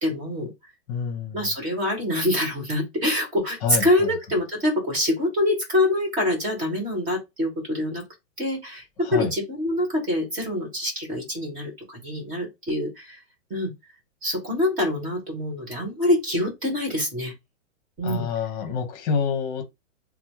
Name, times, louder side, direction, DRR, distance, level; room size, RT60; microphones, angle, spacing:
voice 1, 0.0-0.5 1.3-8.0 8.4-8.8 9.1-11.7 12.0-13.2 13.5-13.7 14.2-17.3 18.0-18.3, left 1 dB, 20° right, 1.4 m, -25 dB
voice 2, 0.9-1.5 3.6-4.1 9.0-9.3 18.0-19.7, left 6 dB, 30° left, 1.0 m, -27 dB
3.1 x 2.0 x 3.0 m
hypercardioid pair, 170°, 38 cm